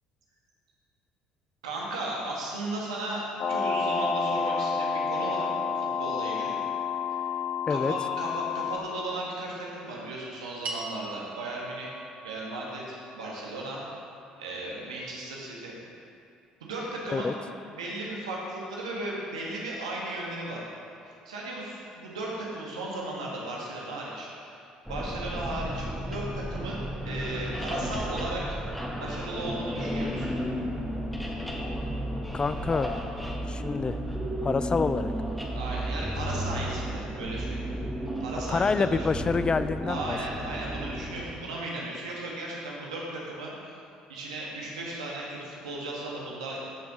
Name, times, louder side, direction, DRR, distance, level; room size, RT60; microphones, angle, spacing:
voice 1, 1.6-3.2 3.5-6.6 7.0-7.2 7.7-11.9 12.2-13.8 14.4-15.7 16.6-17.3 17.7-20.6 21.0-24.3 24.9-26.8 27.0-28.5 29.0-30.3 35.5-37.6 38.2-39.1 39.8-43.5 44.1-46.8, right 2 dB, 85° right, -4 dB, 1.5 m, -35 dB
sound 1, 3.4-8.8, left 5 dB, 45° left, 0.8 m, -29 dB
sound 2, 10.6-15.1, right 3 dB, 45° right, 2.1 m, -43 dB
sound 3, 24.9-41.2, equal, ahead, 1.8 m, -33 dB
voice 2, 32.3-33.0 33.5-34.0 34.4-35.1 38.5-40.2, left 4 dB, 30° left, 12 dB, 0.4 m, -27 dB
14.5 x 6.0 x 3.7 m, 2.6 s
hypercardioid pair, 55°, 3 cm